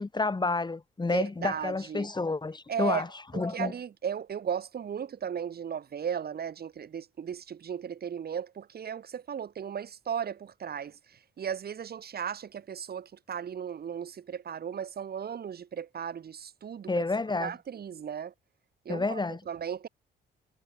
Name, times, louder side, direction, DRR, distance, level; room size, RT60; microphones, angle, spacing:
voice 1, 0.0-3.1 3.3-3.7 16.9-17.5 18.9-19.4, left 3 dB, 20° left, 2.9 m, -29 dB
voice 2, 1.1-2.1 2.7-3.0 3.3-17.0 17.4-18.3 18.8-19.2 19.5-19.9, right 8 dB, 50° right, 2.5 m, -36 dB
cardioid pair, 90°, 20 cm